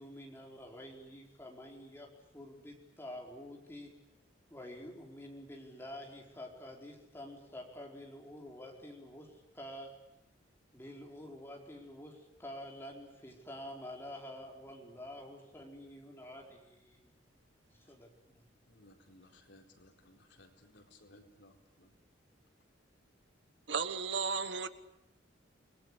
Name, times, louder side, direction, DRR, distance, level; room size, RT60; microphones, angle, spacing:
voice 1, 0.0-2.1 2.3-3.9 4.5-10.0 10.7-17.1 17.7-18.5, left 1 dB, 10° left, 4.8 m, -48 dB
voice 2, 18.7-21.9, left 1 dB, 70° left, 4.4 m, -61 dB
voice 3, 23.7-24.7, right 5 dB, 70° right, 1.4 m, -34 dB
28.5 x 20.5 x 9.9 m
head